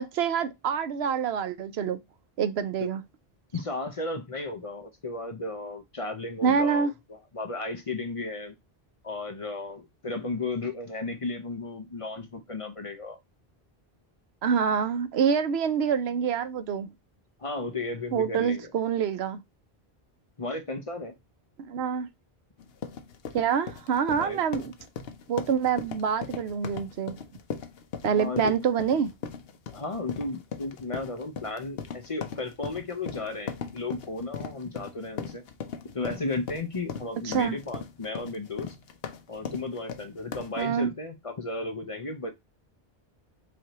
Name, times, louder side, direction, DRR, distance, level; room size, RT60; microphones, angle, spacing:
voice 1, 0.0-2.0 2.4-3.0 6.4-6.9 14.4-16.9 18.1-19.4 21.6-22.1 23.3-24.7 25.3-27.2 28.0-29.1 37.2-37.6 40.6-40.9, right 7 dB, 80° right, 0.9 m, -26 dB
voice 2, 3.5-8.5 9.0-13.2 17.4-18.7 20.4-21.1 24.1-24.4 28.1-28.5 29.7-35.4 35.9-38.8 39.3-42.3, left 3 dB, 40° left, 0.7 m, -34 dB
sound 1, 22.6-40.7, left 6 dB, 75° left, 0.9 m, -39 dB
4.9 x 2.7 x 2.9 m
omnidirectional pair, 1.0 m